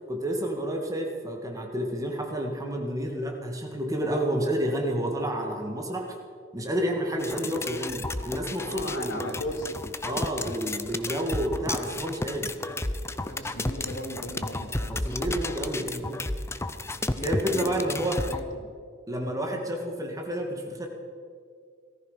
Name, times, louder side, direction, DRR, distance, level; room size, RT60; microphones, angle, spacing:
voice 1, 0.1-6.1 6.5-9.3 10.0-12.6 14.9-16.3 17.2-18.2 19.1-20.9, right 1 dB, 20° right, 1 dB, 2.0 m, -30 dB
voice 2, 5.1-5.5 8.6-10.4 13.2-15.3 16.8-18.7 19.1-19.3, left 1 dB, 75° left, 3 dB, 2.4 m, -39 dB
sound 1, 7.2-18.4, left 2 dB, 15° left, 0.6 m, -33 dB
18.0 x 14.0 x 5.7 m, 2.1 s
head